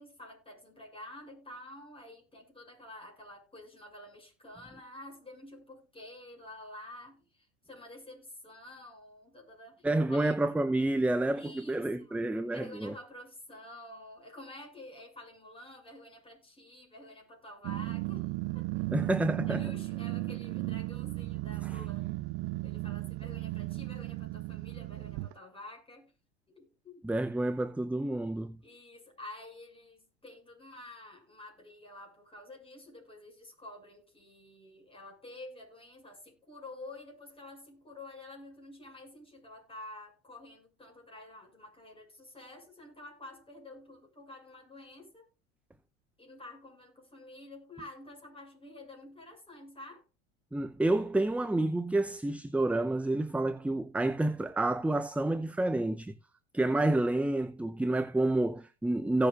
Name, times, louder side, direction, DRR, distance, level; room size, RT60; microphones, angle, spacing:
voice 1, 0.0-10.6 11.3-12.2 12.5-18.6 19.5-22.1 22.6-26.2 26.5-27.1 28.6-45.3 46.2-50.0, left 1 dB, 15° left, 6.6 m, -49 dB
voice 2, 9.8-12.9 18.9-19.6 21.7-21.8 27.0-28.6 50.5-56.1 56.5-59.3, right 2 dB, 5° right, 0.7 m, -29 dB
Growling, 17.6-25.3, right 21 dB, 50° right, 0.5 m, -35 dB
17.0 x 6.8 x 2.5 m
hypercardioid pair, 85°, 34 cm